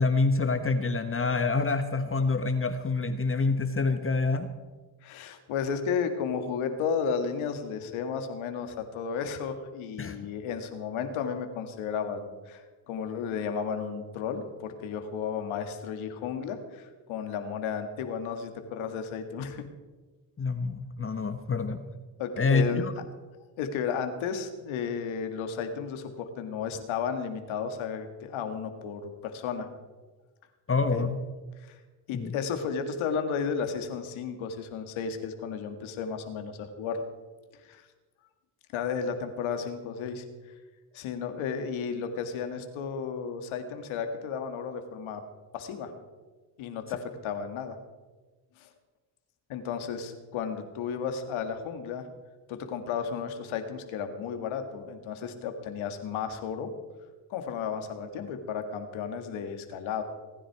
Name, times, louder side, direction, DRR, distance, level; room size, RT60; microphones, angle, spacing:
voice 1, 0.0-4.5 10.0-10.2 20.4-21.9 22.4-22.9 30.7-31.2 32.1-32.3, left 3 dB, 25° left, 8 dB, 1.2 m, -27 dB
voice 2, 5.0-19.6 22.2-22.9 23.6-29.7 30.9-31.0 31.6-31.8 32.1-37.0 37.6-37.8 38.7-40.2 40.9-45.2 45.5-45.9 46.6-47.8 48.6-48.7 49.5-52.1 52.5-56.7 57.3-60.0, left 6 dB, 80° left, 7 dB, 2.0 m, -33 dB
24.0 x 10.0 x 4.8 m, 1.3 s
cardioid pair, 80°, 47 cm